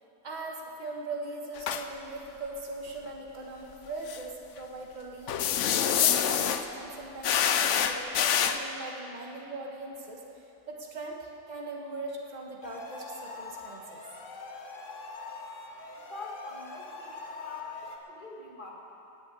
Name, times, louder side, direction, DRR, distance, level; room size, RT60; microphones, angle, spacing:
voice 1, 0.2-14.0, right 2 dB, 25° right, -1 dB, 1.6 m, -40 dB
sound 1, 1.6-1.8 4.1-4.2 5.3-6.7 7.2-8.6, left 9 dB, 65° left, 0.7 m, -26 dB
sound 2, 12.6-18.0, left 4 dB, 50° left, 1.3 m, -43 dB
voice 2, 16.1-18.7, left 2 dB, 30° left, -2 dB, 2.0 m, -44 dB
18.0 x 7.2 x 8.4 m, 3.0 s
omnidirectional pair, 1.9 m